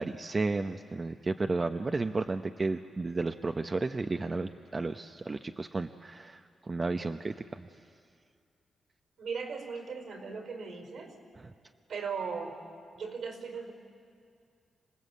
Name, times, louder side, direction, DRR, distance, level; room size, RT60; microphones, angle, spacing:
voice 1, 0.0-7.7, right 3 dB, 35° right, 7 dB, 0.8 m, -33 dB
voice 2, 9.2-11.1 11.9-12.6 12.9-13.7, right 5 dB, 75° right, 5 dB, 4.7 m, -38 dB
26.5 x 19.0 x 8.4 m, 2.3 s
cardioid pair, 60°, 0 cm